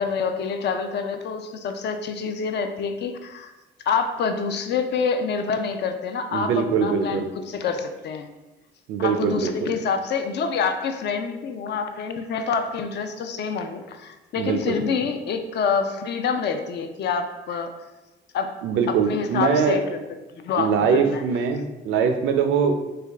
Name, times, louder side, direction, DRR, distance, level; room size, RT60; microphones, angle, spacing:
voice 1, 0.0-3.5 3.9-8.3 9.0-17.7 18.3-18.6 18.9-20.0 20.3-21.2, left 5 dB, 60° left, 6 dB, 0.4 m, -27 dB
voice 2, 6.3-7.3 8.9-9.7 14.4-14.9 18.6-19.8 20.6-22.9, right 6 dB, 80° right, 6 dB, 0.4 m, -22 dB
3.4 x 2.3 x 3.4 m, 1.1 s
cardioid pair, 90°, 20 cm